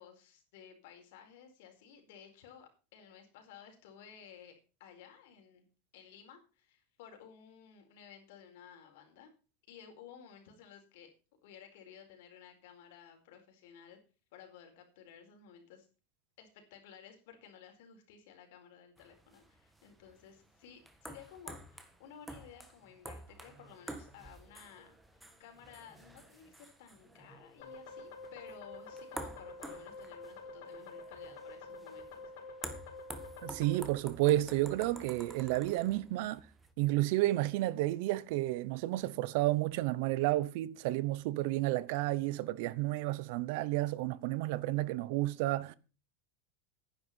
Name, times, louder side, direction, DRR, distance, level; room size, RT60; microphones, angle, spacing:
voice 1, 0.0-5.6 5.9-9.3 9.7-11.1 11.4-14.0 14.3-15.9 16.4-32.2, left 8 dB, 70° left, 4.4 m, -55 dB
sound 1, 19.0-36.7, right 1 dB, 5° right, 1.6 m, -50 dB
sound 2, 27.6-33.8, left 3 dB, 85° left, 4.1 m, -48 dB
voice 2, 33.4-36.4 36.8-45.7, right 17 dB, 60° right, 0.8 m, -31 dB
11.0 x 10.5 x 5.6 m
supercardioid pair, 160°, 0 cm